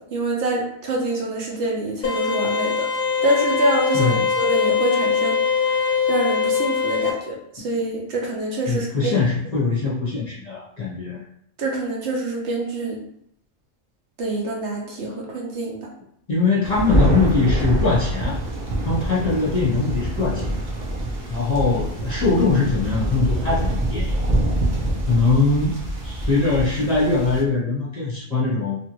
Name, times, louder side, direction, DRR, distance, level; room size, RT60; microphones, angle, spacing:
voice 1, 0.0-2.8 3.2-9.1 11.6-13.0 14.2-15.9, right 1 dB, 65° right, -2 dB, 0.9 m, -26 dB
sound 1, 2.0-7.1, left 5 dB, 65° left, 0.5 m, -22 dB
voice 2, 3.9-4.3 8.7-11.2 16.3-18.3 18.8-20.4 21.3-24.1 25.1-25.7 26.0-28.8, left 3 dB, 35° left, -7 dB, 0.8 m, -21 dB
Thunder, 16.6-27.4, right 1 dB, 45° right, 0.6 m, -25 dB
3.0 x 2.5 x 2.9 m, 0.71 s
omnidirectional pair, 1.4 m